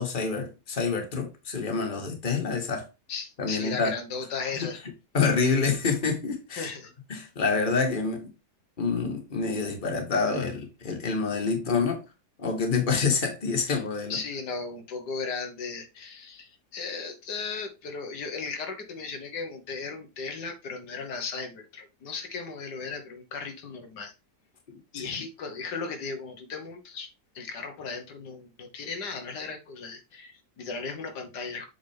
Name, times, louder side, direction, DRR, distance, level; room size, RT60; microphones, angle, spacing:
voice 1, 0.0-2.9 3.4-3.9 4.6-4.7 5.1-6.7 7.1-8.3 8.8-12.0 12.4-14.2 25.0-25.1, left 4 dB, 30° left, 1.6 m, -27 dB
voice 2, 3.1-4.8 6.5-6.9 13.0-13.1 13.7-13.8 14.1-24.1 24.9-27.1 27.4-31.7, left 4 dB, 90° left, 1.9 m, -36 dB
7.4 x 4.1 x 3.5 m
omnidirectional pair, 1.7 m